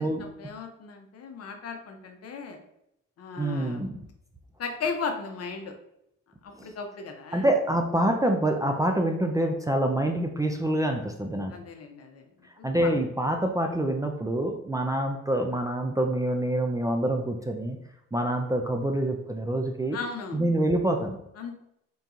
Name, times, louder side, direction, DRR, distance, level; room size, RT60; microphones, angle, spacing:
voice 1, 0.0-2.6 3.2-3.9 4.6-5.7 6.4-7.5 11.5-12.3 12.6-12.9 19.9-20.4 21.4-21.5, left 5 dB, 55° left, 4 dB, 0.8 m, -36 dB
voice 2, 3.4-4.0 6.5-6.7 7.3-11.5 12.6-17.8 18.1-20.0 20.3-21.2, right 1 dB, 10° right, 3 dB, 0.5 m, -26 dB
3.9 x 2.8 x 3.6 m, 0.79 s
cardioid pair, 90°, 30 cm